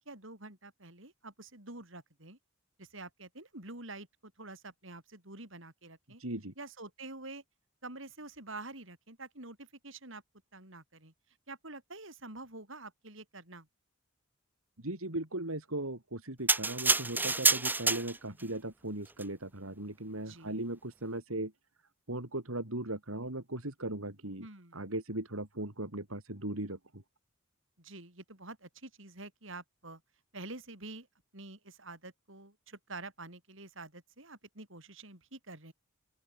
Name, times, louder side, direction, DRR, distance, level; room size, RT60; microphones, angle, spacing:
voice 1, 0.0-2.4 2.8-6.2 6.6-7.4 7.8-10.2 10.5-11.1 11.5-13.7 18.3-18.6 20.2-20.7 24.4-24.8 27.8-30.0 30.3-31.1 31.3-35.7, right 2 dB, 65° right, 6.2 m, -47 dB
voice 2, 6.2-6.5 14.8-21.5 22.1-24.5 24.7-27.0, right 1 dB, 85° right, 4.1 m, -38 dB
sound 1, 16.5-18.4 19.1-19.2, right 3 dB, 10° right, 1.4 m, -28 dB
open air
head